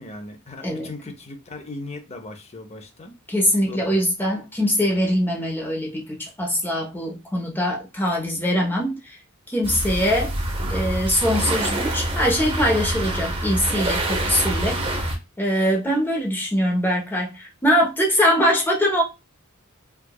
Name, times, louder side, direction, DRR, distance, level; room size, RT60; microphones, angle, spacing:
voice 1, 0.0-3.1 3.7-4.0, left 2 dB, 30° left, 0.7 m, -38 dB
voice 2, 3.3-9.2 9.5-10.3 10.7-14.8 15.4-19.0, equal, 10° left, 1.0 m, -22 dB
sound 1, 9.6-15.2, right 1 dB, 25° right, 0.8 m, -26 dB
4.7 x 2.5 x 2.3 m
head